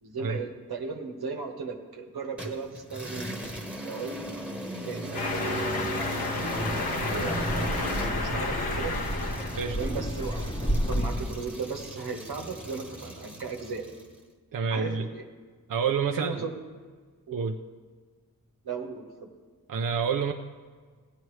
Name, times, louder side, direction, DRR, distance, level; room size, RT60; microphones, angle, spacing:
voice 1, 0.0-3.5 3.8-4.1 4.8-6.3 7.1-8.9 9.7-13.8 14.7-15.2 16.1-16.5 17.3-17.4 18.6-19.3, right 4 dB, 90° right, 2 dB, 1.3 m, -36 dB
sound 1, 2.4-14.1, right 1 dB, 5° right, 1.2 m, -38 dB
sound 2, 5.1-9.7, left 3 dB, 80° left, 1.0 m, -31 dB
Wind, 6.4-11.4, equal, 10° left, 0.9 m, -31 dB
voice 2, 14.5-15.0 15.7-16.4 17.3-17.6 19.7-20.3, right 6 dB, 60° right, 4 dB, 0.6 m, -28 dB
16.0 x 9.4 x 3.2 m, 1.5 s
wide cardioid pair, 65°, 37 cm